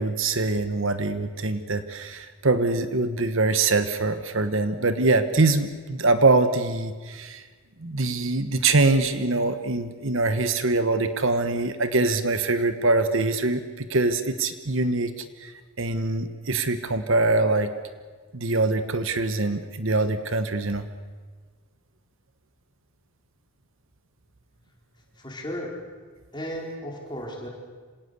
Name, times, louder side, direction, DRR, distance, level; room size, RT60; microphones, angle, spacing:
voice 1, 0.0-7.4 7.8-15.5 15.8-17.7 18.3-20.9, right 3 dB, 60° right, 10 dB, 1.2 m, -23 dB
voice 2, 25.2-25.7 26.3-27.5, equal, 20° left, -1 dB, 4.2 m, -34 dB
26.5 x 18.0 x 8.2 m, 1.5 s
head